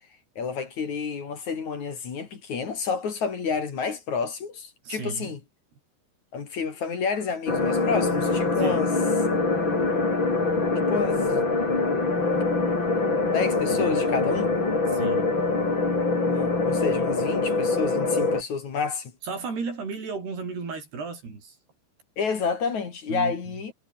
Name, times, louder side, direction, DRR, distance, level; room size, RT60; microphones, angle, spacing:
voice 1, 0.4-5.4 6.3-8.9 10.9-11.5 13.3-14.5 16.3-19.1 22.2-23.7, left 5 dB, 50° left, 4.0 m, -29 dB
voice 2, 4.9-5.4 8.6-8.8 14.9-15.3 19.2-21.6 23.1-23.4, right 4 dB, 80° right, 9.1 m, -34 dB
sound 1, 7.5-18.4, left 3 dB, 30° left, 5.8 m, -24 dB
omnidirectional pair, 4.6 m